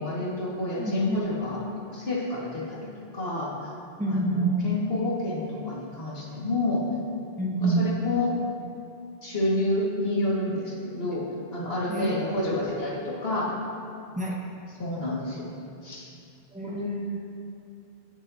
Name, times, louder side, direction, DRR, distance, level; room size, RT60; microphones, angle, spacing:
voice 1, 0.0-2.9 3.1-3.7 4.1-6.8 7.6-8.4 9.2-11.2 11.5-13.6 14.8-15.5 15.8-16.1 16.6-16.9, left 2 dB, 70° left, -5 dB, 2.3 m, -29 dB
voice 2, 0.8-1.2 4.0-4.7 7.4-7.9 11.9-12.5 14.1-14.4 16.5-17.4, right 2 dB, 5° right, -4 dB, 1.4 m, -28 dB
20.0 x 7.1 x 2.9 m, 2.5 s
omnidirectional pair, 1.1 m